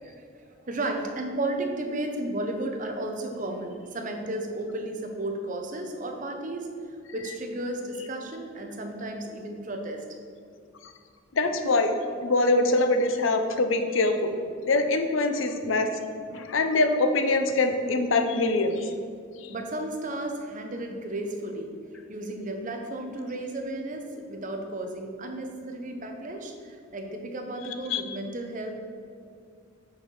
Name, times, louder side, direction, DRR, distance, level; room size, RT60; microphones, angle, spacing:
voice 1, 0.0-6.7 7.1-10.0 19.5-28.7, right 1 dB, 40° right, 4 dB, 0.8 m, -33 dB
voice 2, 11.4-11.9 12.2-14.3 14.6-15.9 16.3-18.9 27.9-28.0, left 2 dB, 85° left, 7 dB, 0.7 m, -23 dB
6.3 x 4.6 x 6.3 m, 2.2 s
head